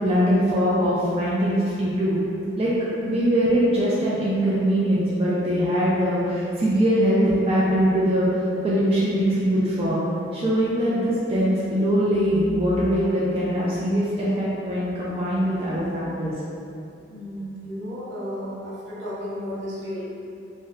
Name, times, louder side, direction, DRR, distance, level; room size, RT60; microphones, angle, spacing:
voice 1, 0.0-2.2 2.6-10.0 10.3-16.3, equal, 30° right, -9 dB, 0.4 m, -22 dB
voice 2, 17.1-20.1, equal, 75° right, -8 dB, 0.9 m, -33 dB
3.2 x 2.7 x 2.4 m, 2.6 s
head